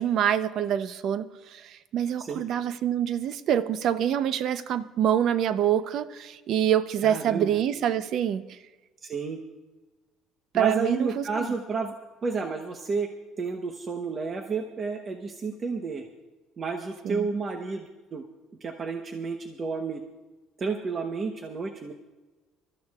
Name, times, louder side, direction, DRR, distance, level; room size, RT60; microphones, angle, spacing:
voice 1, 0.0-8.6 10.5-11.5 17.0-17.3, right 10 dB, 55° right, 13 dB, 0.6 m, -26 dB
voice 2, 7.0-7.5 9.0-9.4 10.5-11.9 12.2-13.1 13.4-16.1 16.6-18.2 18.6-20.0 20.6-21.9, right 4 dB, 30° right, 4 dB, 0.9 m, -31 dB
26.5 x 13.5 x 2.4 m, 1.2 s
cardioid pair, 130°, 0 cm